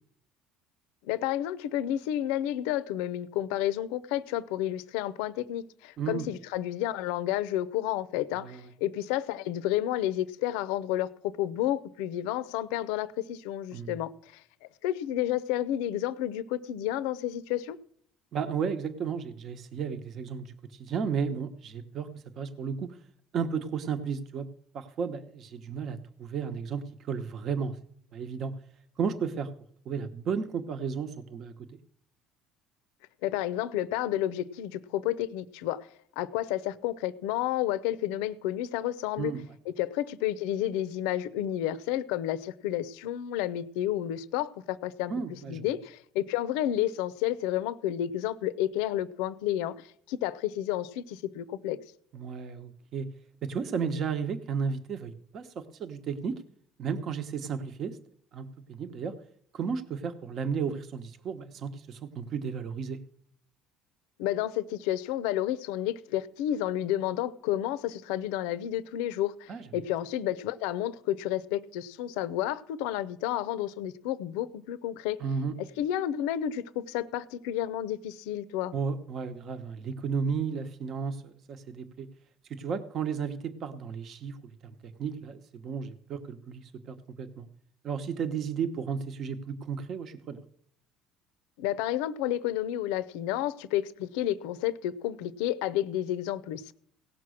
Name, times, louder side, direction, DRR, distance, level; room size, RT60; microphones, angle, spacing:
voice 1, 1.0-14.4 14.8-17.8 33.2-35.9 36.2-39.3 39.7-51.8 64.2-75.2 75.8-78.7 91.6-96.7, left 12 dB, 85° left, 0.5 m, -31 dB
voice 2, 6.0-6.3 8.3-8.7 13.7-14.0 18.3-22.1 22.4-22.9 23.3-24.5 24.7-27.8 28.1-28.5 29.0-29.5 29.8-31.8 39.2-39.4 45.1-45.7 52.1-53.1 53.4-56.4 56.8-58.0 58.3-59.1 59.5-63.0 69.5-69.6 75.2-75.5 78.7-82.1 82.5-84.4 84.6-87.5 87.8-90.4, right 6 dB, 45° right, 1.0 m, -33 dB
17.0 x 6.0 x 6.3 m
cardioid pair, 115°, 0 cm